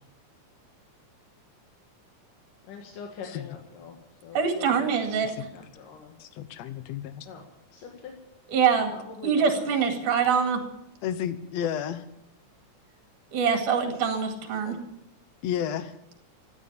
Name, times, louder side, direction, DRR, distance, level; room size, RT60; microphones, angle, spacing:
voice 1, 2.7-4.0 4.2-4.8 5.5-6.1 7.3-7.5 7.7-8.1 8.9-9.7, left 6 dB, 80° left, 1 dB, 3.3 m, -43 dB
voice 2, 4.3-5.5 8.5-8.9 9.2-10.6 13.3-14.8, right 6 dB, 75° right, 5 dB, 3.7 m, -24 dB
voice 3, 6.2-7.3 11.0-12.0 15.4-15.9, left 9 dB, 65° left, 13 dB, 2.0 m, -31 dB
15.5 x 10.5 x 8.5 m, 0.81 s
omnidirectional pair, 3.7 m